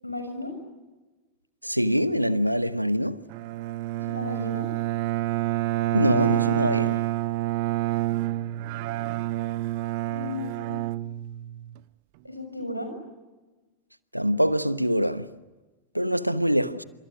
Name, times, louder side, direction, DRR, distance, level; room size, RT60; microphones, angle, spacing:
voice 1, 0.0-0.5 3.9-4.7 10.0-10.7 12.2-12.9, left 2 dB, 85° left, 6.3 m, -35 dB
voice 2, 1.6-3.2 5.9-7.0 14.1-15.3 15.9-16.8, equal, 90° right, 1.1 m, -24 dB
Bowed string instrument, 3.3-11.8, right 16 dB, 45° right, 0.9 m, -28 dB
28.5 x 27.5 x 6.3 m
figure-of-eight pair, 90°, 0 cm